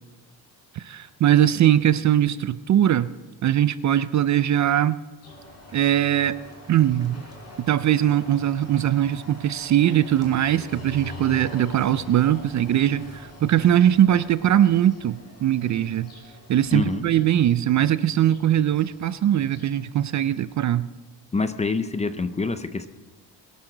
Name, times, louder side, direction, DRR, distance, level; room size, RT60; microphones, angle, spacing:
voice 1, 0.8-3.1 3.4-5.0 5.7-6.4 6.7-7.2 7.7-16.1 16.5-20.9, right 11 dB, 45° right, 15 dB, 0.4 m, -21 dB
sound 1, 5.2-20.5, left 2 dB, 35° left, 5.2 m, -45 dB
sound 2, 5.7-12.3, right 2 dB, 10° right, 2.6 m, -53 dB
voice 2, 16.7-17.0 21.3-22.9, left 4 dB, 15° left, 11 dB, 0.5 m, -26 dB
22.0 x 12.0 x 3.9 m, 1.2 s
cardioid pair, 170°, 42 cm